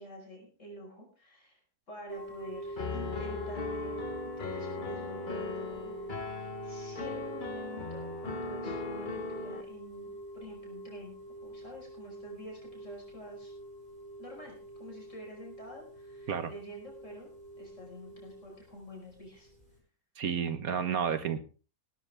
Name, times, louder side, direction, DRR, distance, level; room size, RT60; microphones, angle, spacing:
voice 1, 0.0-1.6 1.9-4.0 4.4-11.2 11.4-13.5 14.2-17.3 17.6-19.5, right 1 dB, 55° left, -1 dB, 5.6 m, -48 dB
sound 1, 2.1-19.8, right 1 dB, 25° right, 4.9 m, -45 dB
Piano, 2.8-9.6, left 3 dB, 35° left, 1.2 m, -38 dB
voice 2, 20.2-21.4, right 7 dB, 70° right, 12 dB, 1.7 m, -31 dB
18.5 x 12.5 x 3.5 m, 0.35 s
omnidirectional pair, 1.6 m